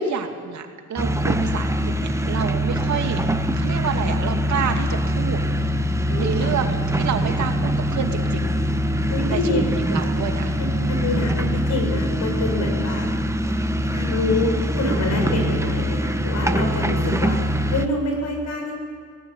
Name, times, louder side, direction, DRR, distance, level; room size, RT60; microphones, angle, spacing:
voice 1, 0.0-1.7 2.0-3.2 3.6-5.4 6.2-8.6 9.3-10.6 15.3-15.6, right 7 dB, 70° right, 4 dB, 2.6 m, -29 dB
sound 1, 1.0-17.9, equal, 10° right, 1.3 m, -23 dB
voice 2, 6.1-6.5 9.1-9.7 10.6-13.1 13.8-17.4 17.7-18.7, left 2 dB, 65° left, 3 dB, 7.3 m, -26 dB
19.5 x 18.0 x 9.9 m, 2.1 s
cardioid pair, 90°, 30 cm